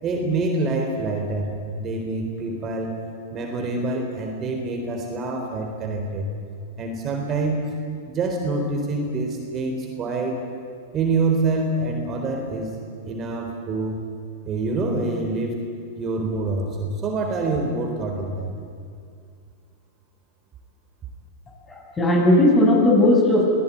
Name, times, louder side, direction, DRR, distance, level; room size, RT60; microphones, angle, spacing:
voice 1, 0.0-2.9 3.3-6.3 6.8-7.6 8.1-10.4 10.9-12.7 13.1-14.0 14.4-15.6 16.0-18.5, right 3 dB, 30° right, 2 dB, 4.0 m, -26 dB
voice 2, 21.7-23.4, left 1 dB, 20° left, -1 dB, 7.8 m, -17 dB
24.5 x 17.0 x 9.5 m, 2.3 s
hypercardioid pair, 105°, 0 cm